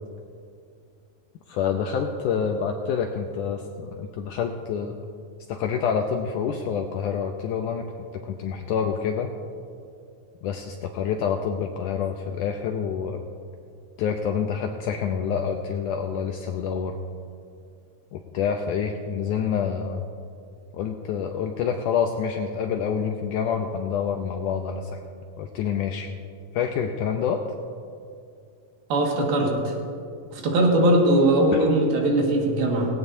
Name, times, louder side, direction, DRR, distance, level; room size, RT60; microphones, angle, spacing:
voice 1, 1.5-5.0 5.5-7.9 8.1-9.3 10.4-13.2 14.0-16.9 18.1-20.1 20.7-25.0 25.4-26.1 26.5-27.4 31.5-31.6, left 7 dB, 80° left, 4 dB, 1.8 m, -27 dB
voice 2, 28.9-29.7 30.3-32.9, right 1 dB, 80° right, -1 dB, 3.7 m, -20 dB
17.5 x 17.0 x 2.7 m, 2.4 s
omnidirectional pair, 4.3 m